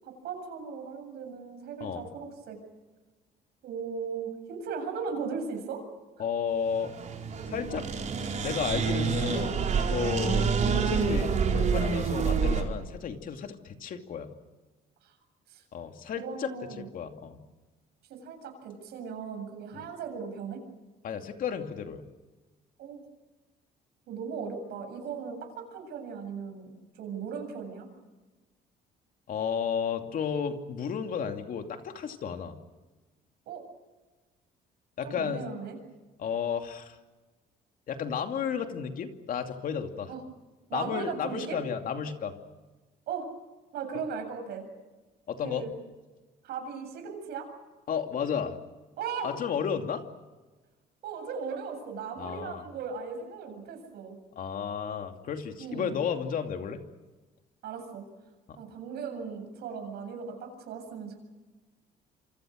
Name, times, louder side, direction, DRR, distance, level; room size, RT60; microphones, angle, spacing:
voice 1, 0.0-2.6 3.6-5.9 11.0-11.3 15.0-15.2 15.5-15.6 16.2-16.9 18.1-20.6 22.8-23.0 24.1-27.9 33.5-33.6 35.0-35.8 40.1-40.2 40.7-41.6 43.1-43.3 43.7-44.6 45.4-45.8 46.4-47.5 49.0-49.4 51.0-54.2 55.6-56.0 57.6-58.1 58.6-61.2, right 6 dB, 75° right, 5 dB, 7.7 m, -37 dB
voice 2, 6.2-6.9 7.5-7.9 8.2-14.3 15.7-16.5 16.8-17.4 19.7-19.8 21.0-22.0 29.3-32.6 35.0-35.4 36.2-37.0 37.9-40.1 40.7-42.3 45.3-45.7 47.9-48.5 49.2-50.0 52.2-52.6 54.4-56.8 58.5-58.6, left 7 dB, 55° left, 5 dB, 2.7 m, -33 dB
sound 1, 6.7-12.6, right 5 dB, 45° right, 4.7 m, -27 dB
27.5 x 26.0 x 6.5 m, 1.2 s
cardioid pair, 110°, 17 cm